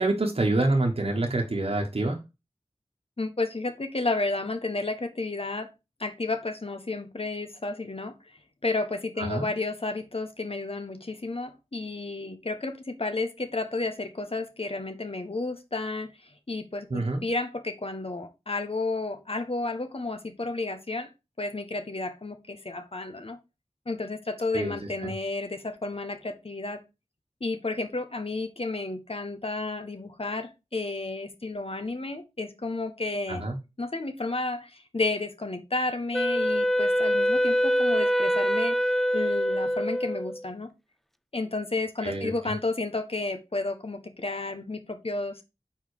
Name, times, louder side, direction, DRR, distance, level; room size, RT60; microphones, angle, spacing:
voice 1, 0.0-2.2 9.2-9.5 16.9-17.2 24.5-25.1 33.3-33.6 42.0-42.5, right 2 dB, 55° right, 1 dB, 1.3 m, -27 dB
voice 2, 3.2-5.7 6.0-8.1 8.6-16.1 16.5-21.1 21.4-23.4 23.9-26.8 27.4-33.4 33.8-38.8 39.1-40.7 41.3-45.3, left 2 dB, 55° left, 8 dB, 1.3 m, -32 dB
Wind instrument woodwind instrument, 36.1-40.5, equal, ahead, 0.4 m, -24 dB
5.6 x 4.6 x 4.8 m, 0.25 s
wide cardioid pair, 45°, 12 cm